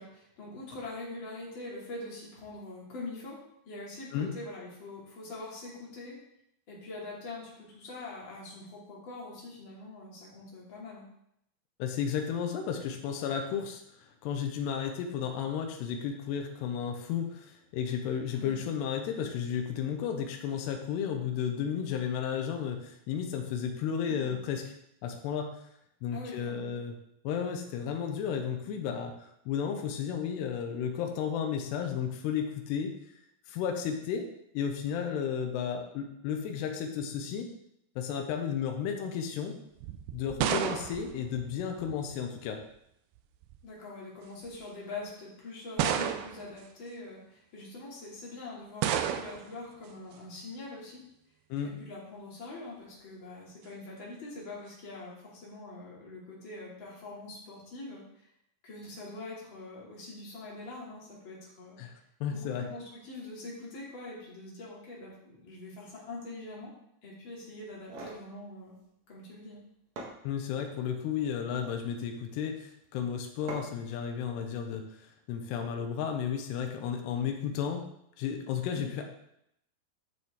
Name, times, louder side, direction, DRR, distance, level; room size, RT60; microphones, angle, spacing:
voice 1, 0.0-3.4 3.6-6.2 6.7-11.0 18.3-18.6 24.1-24.4 26.1-26.7 40.4-40.7 43.6-51.0 51.6-58.2 58.6-61.8 62.3-66.7 67.0-68.8 69.1-69.6 78.7-78.9, left 2 dB, 30° left, -5 dB, 2.8 m, -43 dB
voice 2, 11.8-13.8 14.2-24.6 25.0-25.5 26.0-26.9 27.2-33.0 33.5-34.3 34.5-37.5 38.0-39.6 40.1-42.6 51.5-51.7 61.8-61.9 62.2-62.7 70.2-74.8 75.3-77.8 78.2-79.1, left 7 dB, 80° left, 3 dB, 3.0 m, -33 dB
sound 1, 39.8-42.1 43.2-43.6 44.5-44.6 45.8-46.6 48.8-49.6, right 10 dB, 80° right, 2.6 m, -32 dB
sound 2, 67.7-68.2 69.5-69.6 70.0-70.7 71.4-71.9 73.5-73.9, right 2 dB, 55° right, 2.0 m, -44 dB
10.5 x 6.7 x 3.7 m, 0.76 s
omnidirectional pair, 5.0 m